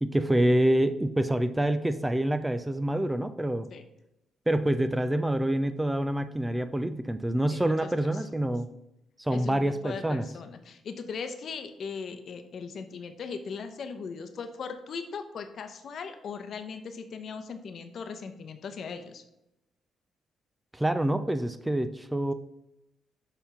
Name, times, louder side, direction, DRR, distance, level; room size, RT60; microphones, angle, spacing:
voice 1, 0.0-3.7 4.5-8.7 9.2-10.2 20.7-22.3, right 1 dB, 10° right, 11 dB, 0.4 m, -26 dB
voice 2, 7.5-8.5 9.3-19.2, left 5 dB, 60° left, 8 dB, 0.9 m, -39 dB
7.1 x 3.6 x 5.6 m, 0.86 s
cardioid pair, 90°, 0 cm